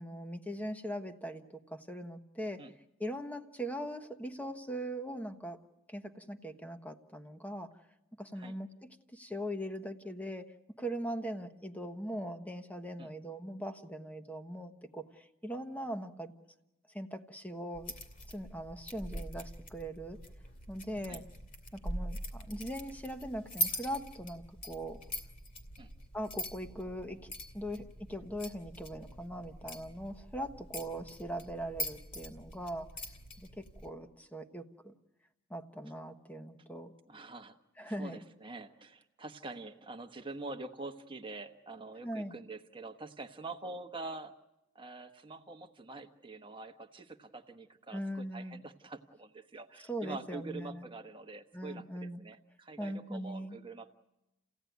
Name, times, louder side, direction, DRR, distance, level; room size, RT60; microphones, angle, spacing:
voice 1, 0.0-2.6 3.0-5.6 5.9-7.7 8.2-16.3 16.9-17.9 18.3-20.2 20.7-21.2 21.7-25.0 26.1-32.9 33.4-34.9 35.5-36.9 37.8-38.2 42.0-42.3 47.9-48.6 49.9-50.8 51.5-52.2 52.8-53.6, equal, 5° left, 7 dB, 1.2 m, -40 dB
sound 1, 17.7-33.9, right 1 dB, 40° left, 2.8 m, -43 dB
voice 2, 37.1-37.5 37.8-44.3 44.7-53.9, right 3 dB, 25° right, 5 dB, 1.3 m, -45 dB
29.5 x 16.5 x 9.4 m, 0.96 s
head